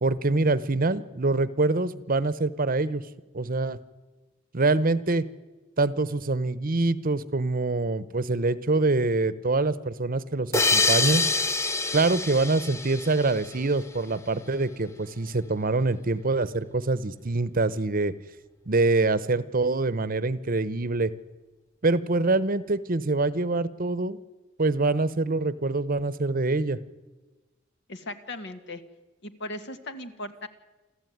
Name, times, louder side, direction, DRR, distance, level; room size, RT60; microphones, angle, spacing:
voice 1, 0.0-3.0 3.3-3.8 4.5-5.2 5.8-11.2 11.9-18.1 18.7-21.1 21.8-24.2 24.6-26.8, right 3 dB, 45° right, 16 dB, 0.9 m, -25 dB
sound 1, 10.5-13.9, left 3 dB, 15° left, 0.8 m, -26 dB
voice 2, 27.9-28.8 29.2-30.5, left 1 dB, 60° left, 8 dB, 1.9 m, -37 dB
27.5 x 14.5 x 9.4 m, 1.2 s
head